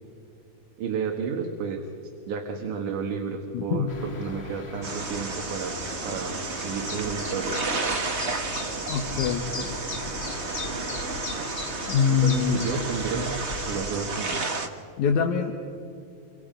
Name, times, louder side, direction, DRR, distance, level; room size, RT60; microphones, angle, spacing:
voice 1, 0.8-1.9 2.3-7.6 9.5-9.7 12.1-13.3 13.6-14.4, right 5 dB, 80° right, 2 dB, 3.1 m, -32 dB
voice 2, 3.5-4.3 8.9-9.5 11.9-12.7 15.0-15.5, left 7 dB, 75° left, 3 dB, 2.7 m, -24 dB
sound 1, 3.9-13.9, left 3 dB, 50° left, 0.7 m, -38 dB
sound 2, 4.8-14.7, right 3 dB, 45° right, 0.9 m, -32 dB
28.5 x 25.0 x 5.2 m, 2.6 s
omnidirectional pair, 3.6 m